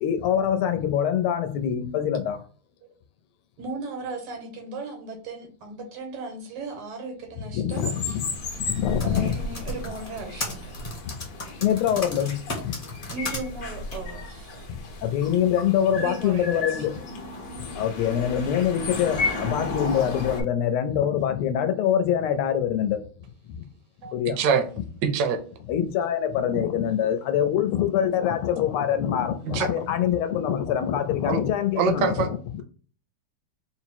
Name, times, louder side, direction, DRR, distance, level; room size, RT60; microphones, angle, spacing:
voice 1, 0.0-2.4 7.5-8.1 8.6-9.3 11.6-12.7 15.0-16.9 17.8-23.0 24.1-24.4 25.7-32.6, left 9 dB, 85° left, 1.5 m, -24 dB
voice 2, 3.6-8.2 9.0-10.8 13.1-14.7 16.0-16.9, right 3 dB, 85° right, 1.9 m, -36 dB
sound 1, 7.7-20.4, left 3 dB, 60° left, 1.0 m, -34 dB
Typing, 8.8-13.4 13.9-14.0, left 2 dB, 40° left, 0.7 m, -34 dB
voice 3, 24.0-24.6 25.0-25.4 29.5-29.7 31.2-31.4 31.8-32.3, right 6 dB, 70° right, 1.1 m, -24 dB
4.0 x 2.0 x 4.3 m
omnidirectional pair, 2.4 m